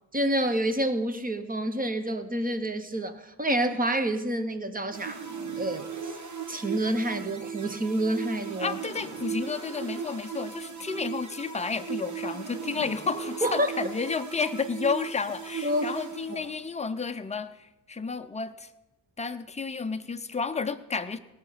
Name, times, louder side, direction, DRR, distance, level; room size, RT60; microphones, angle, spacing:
voice 1, 0.1-5.2 5.6-6.2 6.5-8.8 13.4-13.7 15.6-15.9 16.3-16.4, right 1 dB, 20° right, 9 dB, 0.7 m, -28 dB
sound 1, 4.9-16.8, right 6 dB, 45° right, 1.1 m, -37 dB
voice 2, 8.6-18.7 19.2-21.2, left 5 dB, 15° left, 9 dB, 0.5 m, -31 dB
19.5 x 6.6 x 5.7 m, 1.0 s
wide cardioid pair, 180°, 41 cm